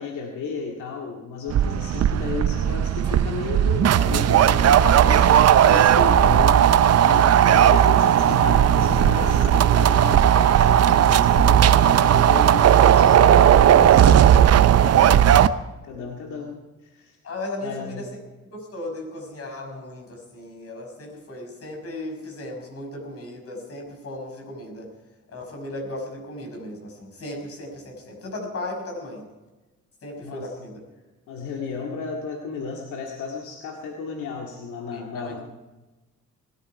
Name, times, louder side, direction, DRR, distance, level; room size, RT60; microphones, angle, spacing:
voice 1, 0.0-14.4 14.8-15.3 15.8-17.2 17.6-18.1 30.2-30.6 31.3-35.4, left 5 dB, 80° left, 0 dB, 2.1 m, -33 dB
sound 1, 1.5-15.5, right 10 dB, 55° right, 0.7 m, -16 dB
sound 2, 3.0-4.2 5.1-7.0 7.4-9.7 10.3-10.5 11.1-12.2 12.8-13.1 13.5-14.8, right 1 dB, 15° right, 4.8 m, -32 dB
voice 2, 4.8-5.5 14.8-15.3 17.2-18.1 18.5-24.9 25.3-29.2 30.0-30.8 34.9-35.4, left 1 dB, 50° left, 2 dB, 6.0 m, -36 dB
20.5 x 14.0 x 4.8 m, 1.1 s
cardioid pair, 90°, 30 cm